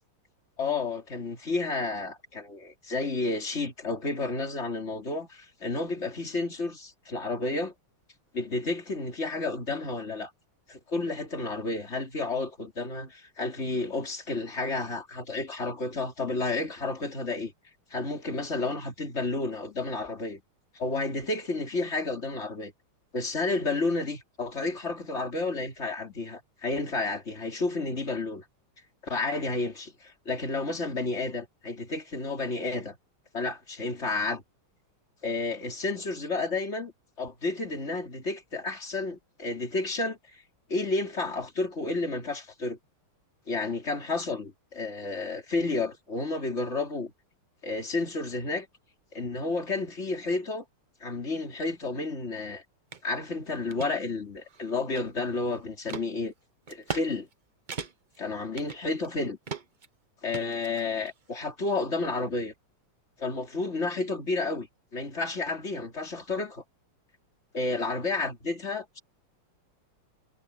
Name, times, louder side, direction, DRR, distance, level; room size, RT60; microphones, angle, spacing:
voice 1, 0.6-7.7 8.3-10.3 10.7-17.5 17.9-20.4 20.8-22.7 23.1-28.4 29.0-33.0 33.3-34.4 35.2-36.9 37.2-40.4 40.7-42.8 43.5-47.1 47.6-48.7 49.1-50.6 51.0-52.6 53.0-56.3 56.7-57.3 58.2-59.4 60.2-62.5 63.2-64.7 64.9-66.6 67.5-69.0, left 3 dB, 30° left, 3.6 m, -31 dB
sound 1, 52.9-53.0 53.5-53.9 54.4-55.4 55.9-56.1 56.7-57.1 57.3-57.4 57.7-58.2 58.6-59.1 59.5-59.9 60.3-61.1, right 5 dB, 40° right, 0.6 m, -38 dB
omnidirectional pair, 2.3 m